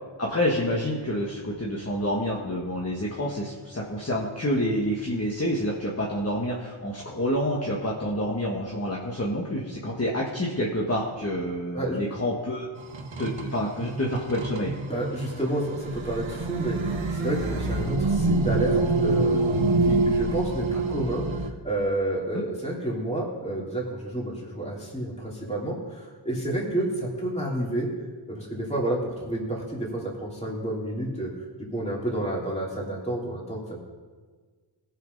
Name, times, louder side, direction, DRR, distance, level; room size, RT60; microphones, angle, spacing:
voice 1, 0.2-12.7 13.2-14.7, equal, 30° left, -3 dB, 1.5 m, -28 dB
sound 1, 12.8-21.5, right 2 dB, 75° right, 1.2 m, -26 dB
voice 2, 14.9-19.4 19.8-27.9 28.3-31.3 31.7-33.8, right 1 dB, 15° left, -4 dB, 2.9 m, -30 dB
17.5 x 6.1 x 5.3 m, 1.5 s
wide cardioid pair, 65°, 47 cm